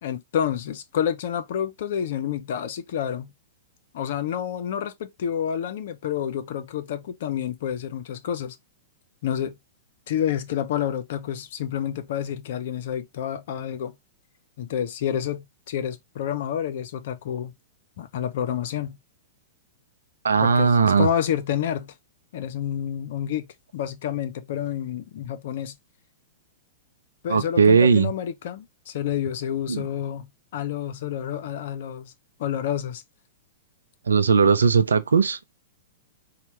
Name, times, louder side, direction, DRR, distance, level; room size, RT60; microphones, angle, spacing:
voice 1, 0.0-3.3 3.9-8.6 9.2-9.6 10.1-14.0 14.6-17.5 18.0-19.0 20.4-21.9 22.3-23.5 23.7-25.8 27.2-32.1 32.4-33.0, left 9 dB, 55° left, 0.7 m, -29 dB
voice 2, 20.2-21.1 27.3-28.1 29.7-29.9 34.1-35.5, right 5 dB, 75° right, 0.5 m, -18 dB
4.3 x 2.3 x 3.2 m
figure-of-eight pair, 105°, 0 cm